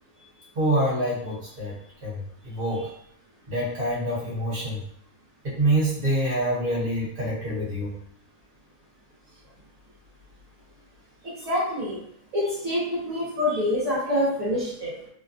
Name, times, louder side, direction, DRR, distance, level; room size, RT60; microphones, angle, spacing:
voice 1, 0.5-1.7 2.0-2.9 3.5-4.8 5.4-7.9, right 1 dB, 45° right, -8 dB, 1.5 m, -26 dB
voice 2, 11.2-12.0 12.3-14.9, left 1 dB, 65° right, -9 dB, 1.4 m, -26 dB
3.2 x 2.2 x 2.5 m, 0.69 s
omnidirectional pair, 1.6 m